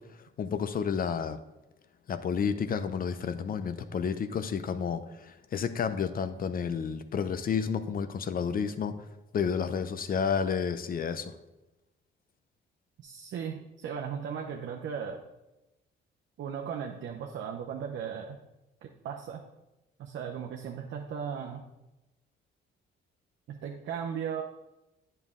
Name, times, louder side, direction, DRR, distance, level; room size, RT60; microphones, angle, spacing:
voice 1, 0.4-1.4 2.1-8.9 9.3-11.3, left 6 dB, 45° left, 11 dB, 0.6 m, -31 dB
voice 2, 13.0-15.2 16.4-18.4 19.0-19.4 20.0-21.6 23.5-24.4, right 7 dB, 70° right, 1 dB, 0.7 m, -36 dB
8.7 x 5.5 x 3.6 m, 0.98 s
cardioid pair, 80°, 20 cm